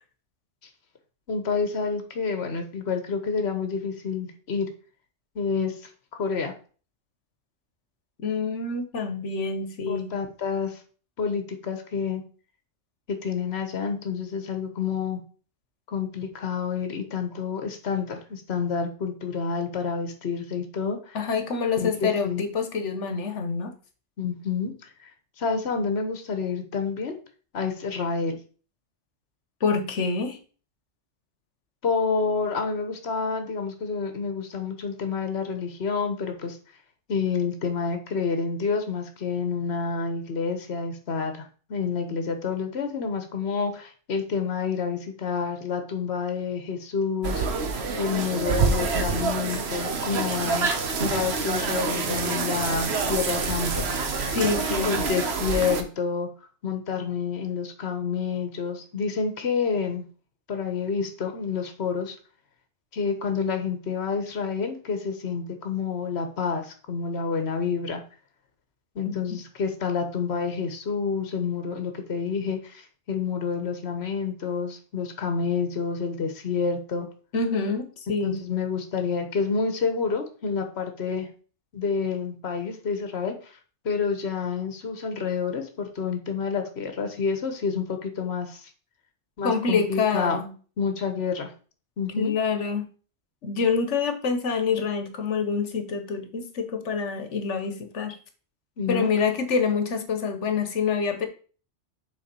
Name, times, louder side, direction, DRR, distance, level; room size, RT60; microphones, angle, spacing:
voice 1, 1.3-4.7 5.3-5.8 6.1-6.5 9.9-10.8 11.2-12.2 13.1-15.2 15.9-21.2 21.8-22.4 24.2-25.1 25.4-27.2 27.5-28.4 31.8-36.6 37.1-47.4 48.0-50.7 51.0-53.9 54.8-56.3 56.6-60.0 60.5-62.2 62.9-68.0 68.9-77.1 78.2-81.3 81.7-83.4 83.8-88.7 89.4-90.4 90.8-91.5 92.0-92.3 98.8-99.1, left 5 dB, 65° left, 6 dB, 1.4 m, -28 dB
voice 2, 8.2-10.1 21.1-23.7 29.6-30.4 54.3-55.0 77.3-78.5 89.4-90.5 92.2-92.9 93.4-98.2 98.9-101.3, left 5 dB, 85° left, 7 dB, 1.4 m, -26 dB
sound 1, 47.2-55.8, right 4 dB, 65° right, 1.2 m, -27 dB
7.1 x 4.0 x 5.3 m, 0.39 s
omnidirectional pair, 1.2 m